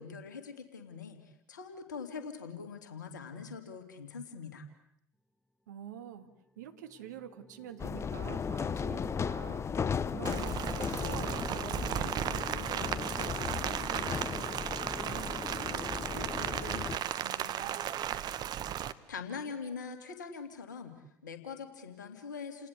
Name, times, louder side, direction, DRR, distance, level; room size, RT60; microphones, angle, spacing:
voice 1, 0.0-4.7 19.1-21.0 21.2-22.7, left 5 dB, 80° left, 8 dB, 2.7 m, -43 dB
voice 2, 5.7-6.3 6.6-9.7 10.1-14.6 15.0-17.9, right 9 dB, 75° right, 9 dB, 1.9 m, -47 dB
sound 1, 6.0-16.7, left 1 dB, 5° left, 1.7 m, -54 dB
sound 2, 7.8-17.0, left 6 dB, 30° left, 0.9 m, -36 dB
Rain, 10.2-18.9, right 10 dB, 45° right, 1.2 m, -35 dB
29.5 x 19.0 x 8.2 m, 0.76 s
figure-of-eight pair, 65°, 10 cm